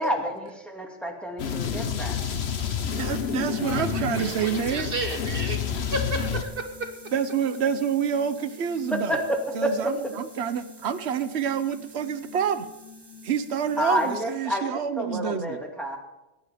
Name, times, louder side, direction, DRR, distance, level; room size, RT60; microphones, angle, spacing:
voice 1, 0.0-2.2 9.1-9.2 9.6-9.9 13.8-16.0, equal, ahead, 0 dB, 2.3 m, -29 dB
sound 1, 1.4-6.4, left 7 dB, 80° left, 1.3 m, -29 dB
sound 2, 1.7-14.6, left 2 dB, 25° right, 1.4 m, -47 dB
voice 2, 3.0-4.9 7.1-9.2 9.5-12.7 13.2-15.6, right 7 dB, 85° right, 11 dB, 1.1 m, -27 dB
voice 3, 3.6-6.9, right 2 dB, 60° right, 4 dB, 1.6 m, -33 dB
21.5 x 10.0 x 5.0 m, 1.0 s
omnidirectional pair, 1.1 m